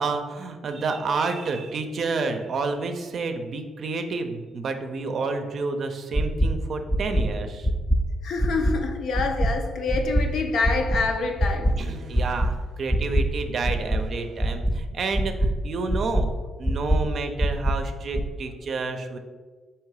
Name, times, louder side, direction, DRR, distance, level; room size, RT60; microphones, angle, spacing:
voice 1, 0.0-7.7 11.8-16.3 16.6-19.2, right 4 dB, 55° right, 0.5 m, -29 dB
sound 1, 6.1-6.5 6.9-7.2 7.6-8.0 8.4-8.7 9.1-9.5 9.9-10.2 10.6-11.0 11.4-11.7 12.1-12.5 12.9-13.2 13.6-14.0 14.4-14.7 15.1-15.5 15.9-16.2 16.6-17.0 17.4-17.7 18.1-18.2, equal, 5° left, 0.4 m, -22 dB
voice 2, 8.2-11.8, left 3 dB, 70° left, 0.5 m, -26 dB
3.7 x 2.9 x 4.8 m
cardioid pair, 90°, 0 cm